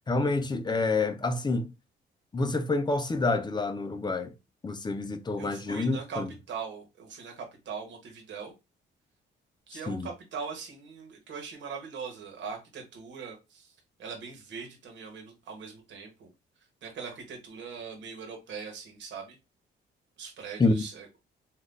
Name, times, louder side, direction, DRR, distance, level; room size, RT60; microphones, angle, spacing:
voice 1, 0.1-1.7 2.3-4.3 4.6-6.3 9.9-10.1 20.6-20.8, left 3 dB, 20° left, 0.5 m, -28 dB
voice 2, 5.4-6.2 6.5-8.5 9.7-16.3 16.8-19.4 20.2-21.1, right 5 dB, 70° right, 1.1 m, -41 dB
3.4 x 2.5 x 2.5 m
cardioid pair, 90°, 20 cm